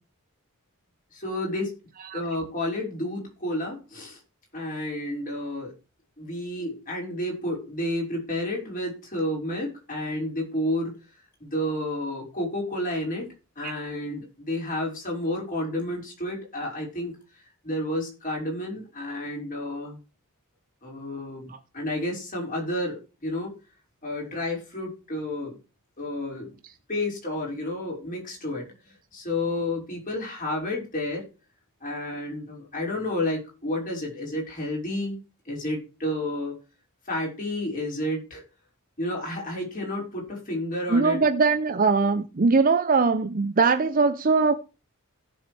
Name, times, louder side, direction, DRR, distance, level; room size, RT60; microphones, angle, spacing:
voice 1, 1.1-1.7 2.1-4.2 4.5-5.7 6.2-11.0 11.4-13.3 13.6-20.0 20.8-23.5 24.0-25.6 26.0-26.5 26.9-31.3 31.8-35.2 35.5-36.6 37.1-38.4 39.0-41.2, left 1 dB, 40° left, 5.5 m, -31 dB
voice 2, 40.9-44.5, right 4 dB, 40° right, 0.6 m, -21 dB
17.0 x 7.3 x 3.4 m
head